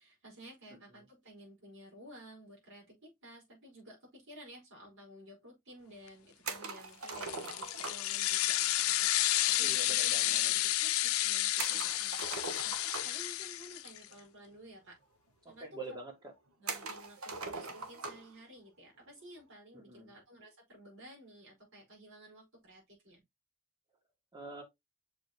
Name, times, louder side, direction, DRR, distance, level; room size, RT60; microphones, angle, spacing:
voice 1, 0.0-15.0 15.5-15.7 16.6-23.2, equal, 60° right, 4.9 m, -54 dB
sound 1, 6.4-8.2 11.6-13.3 14.4-14.5 14.7-14.8 15.6-15.7 16.7-18.3, right 4 dB, 85° right, 1.2 m, -41 dB
sound 2, 7.1-14.1, left 14 dB, 85° left, 0.6 m, -31 dB
voice 2, 9.6-10.5 15.4-16.3 19.7-20.1 24.3-24.6, right 2 dB, 20° right, 2.1 m, -45 dB
6.8 x 4.8 x 3.1 m
head